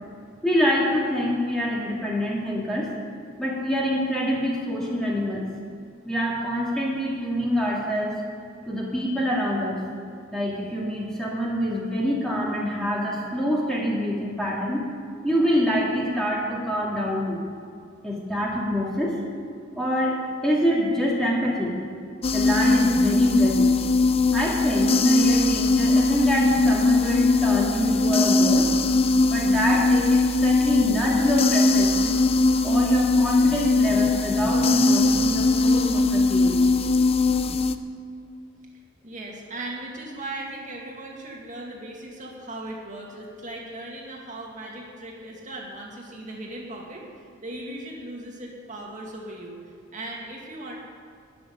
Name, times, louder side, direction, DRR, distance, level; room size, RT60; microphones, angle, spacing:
voice 1, 0.4-2.9 3.4-5.5 6.1-8.2 8.7-9.8 10.3-14.8 15.2-17.4 18.0-19.2 19.8-21.8 22.3-23.7 24.3-28.7 29.3-32.1 32.6-36.7, equal, 5° left, -5 dB, 2.4 m, -25 dB
sound 1, 22.2-37.8, left 3 dB, 30° left, 0.5 m, -20 dB
voice 2, 39.0-47.0 47.4-49.6 49.9-50.8, right 1 dB, 40° right, -2 dB, 2.3 m, -38 dB
13.0 x 6.9 x 10.0 m, 2.3 s
head